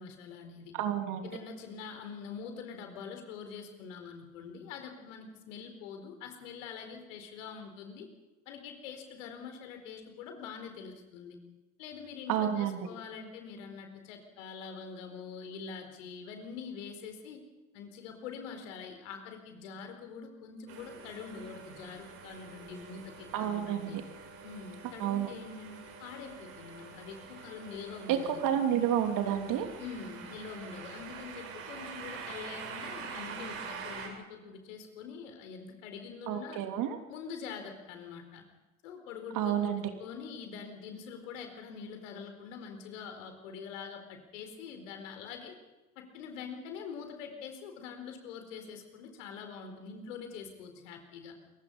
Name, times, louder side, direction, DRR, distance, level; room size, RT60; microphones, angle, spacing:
voice 1, 0.0-0.7 1.2-8.1 8.5-11.4 11.8-17.4 17.7-24.0 24.4-28.4 29.8-36.6 37.1-38.4 38.8-45.6 46.0-51.3, left 6 dB, 65° left, 6 dB, 4.4 m, -44 dB
voice 2, 0.7-1.3 12.3-12.8 23.3-24.0 25.0-25.3 28.1-28.2 28.4-29.7 36.3-37.0 39.3-39.9, right 10 dB, 50° right, 6 dB, 3.3 m, -30 dB
sound 1, 20.7-34.1, right 5 dB, 65° right, 7.3 m, -46 dB
27.5 x 23.5 x 5.5 m, 1.1 s
figure-of-eight pair, 70°, 41 cm